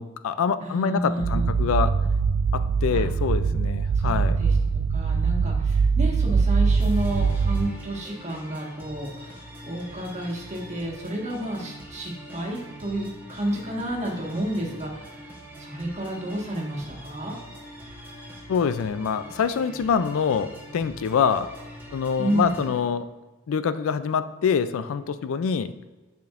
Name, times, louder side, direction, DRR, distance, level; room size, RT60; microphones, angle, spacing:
voice 1, 0.0-1.9 2.5-4.4 18.5-21.5 21.9-23.1 23.5-25.7, left 6 dB, 75° left, 13 dB, 0.4 m, -25 dB
voice 2, 0.6-1.6 2.9-3.0 3.9-15.2 15.6-17.4 22.2-22.6, right 1 dB, 35° right, -1 dB, 1.5 m, -31 dB
sound 1, 1.2-7.7, right 5 dB, 80° right, 0.4 m, -22 dB
sound 2, 6.8-22.8, equal, 10° right, 1.1 m, -43 dB
9.3 x 5.1 x 2.5 m, 1.2 s
head